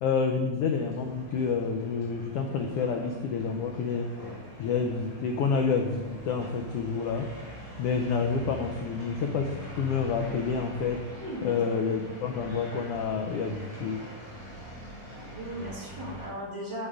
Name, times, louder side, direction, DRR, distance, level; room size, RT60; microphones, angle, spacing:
voice 1, 0.0-4.1 4.6-7.3 7.8-11.0 11.4-14.0, left 5 dB, 80° left, 4 dB, 1.3 m, -28 dB
sound 1, 0.6-16.3, equal, 20° right, 3.1 m, -44 dB
voice 2, 11.2-11.6 12.0-12.1 15.3-16.9, equal, 40° right, -5 dB, 2.7 m, -37 dB
7.3 x 6.5 x 4.9 m, 1.1 s
omnidirectional pair, 3.3 m